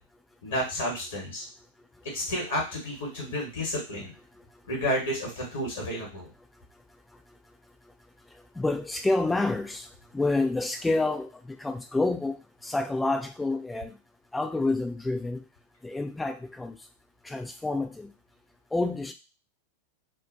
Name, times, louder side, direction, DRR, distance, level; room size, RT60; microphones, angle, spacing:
voice 1, 0.4-1.4 2.1-4.1 4.7-6.3, equal, 60° left, -2 dB, 1.0 m, -31 dB
voice 2, 8.6-9.9 10.1-14.0 14.3-15.4 15.8-16.8 17.2-18.1 18.7-19.1, left 2 dB, 5° left, 6 dB, 0.3 m, -28 dB
2.4 x 2.1 x 2.4 m, 0.30 s
figure-of-eight pair, 90°, 0 cm